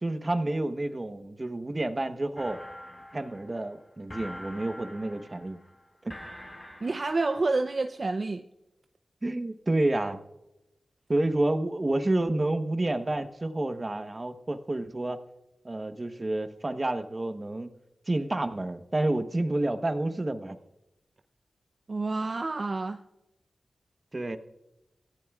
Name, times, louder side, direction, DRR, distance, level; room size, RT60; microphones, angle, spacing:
voice 1, 0.0-2.6 3.1-5.6 6.0-6.1 9.2-10.2 11.1-15.2 15.6-17.7 18.1-20.6 24.1-24.4, right 2 dB, 30° right, 8 dB, 1.0 m, -29 dB
sound 1, 2.4-7.6, left 1 dB, 30° left, 4.3 m, -45 dB
voice 2, 6.8-8.4 21.9-23.0, right 3 dB, 45° right, 6 dB, 0.6 m, -28 dB
26.0 x 15.0 x 2.4 m, 0.96 s
wide cardioid pair, 90°, 0 cm